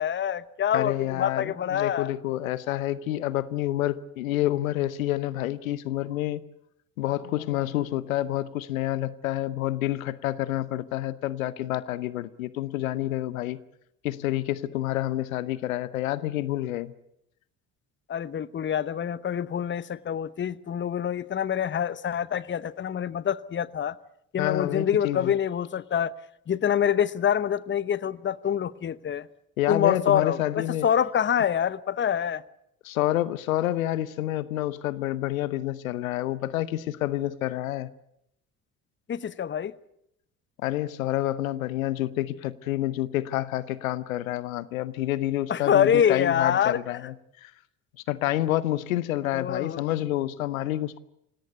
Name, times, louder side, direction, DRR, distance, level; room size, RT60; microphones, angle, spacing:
voice 1, 0.0-2.1 18.1-23.9 24.3-26.1 26.5-29.3 29.7-32.4 39.1-39.7 45.5-46.8 49.3-49.8, left 9 dB, 30° left, 0.9 m, -26 dB
voice 2, 0.7-6.4 7.0-13.6 14.0-16.9 24.4-25.3 29.6-30.9 32.8-37.9 40.6-47.1 47.4-47.5 48.1-51.0, left 14 dB, 75° left, 0.8 m, -28 dB
26.0 x 18.0 x 8.1 m
figure-of-eight pair, 50°, 41 cm